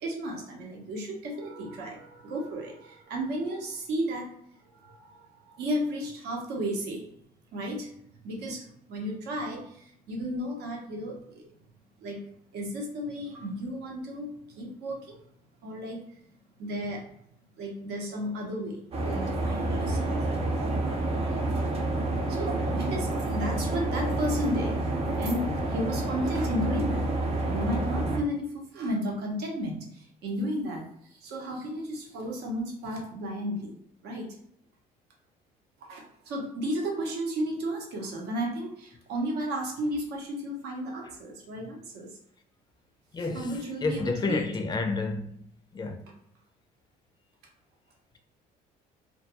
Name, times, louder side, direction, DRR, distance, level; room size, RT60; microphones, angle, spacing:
voice 1, 0.0-4.2 4.8-5.1 5.5-7.0 7.5-7.9 8.2-8.6 8.9-9.6 10.1-11.4 12.0-12.2 12.5-15.0 15.6-16.0 16.6-17.0 17.6-20.2 22.4-23.1 23.3-24.7 25.2-25.4 25.7-27.0 27.4-28.5 28.7-29.8 30.2-30.8 31.2-33.7 34.0-34.3 35.9-42.1 43.2-44.5, equal, 75° right, 0.8 m, -33 dB
sound 1, 18.9-28.2, right 2 dB, 35° right, 0.6 m, -29 dB
voice 2, 43.1-43.5 43.8-45.5 45.7-46.0, left 3 dB, 25° left, 0.4 m, -30 dB
2.3 x 2.2 x 2.8 m
cardioid pair, 110°, 17 cm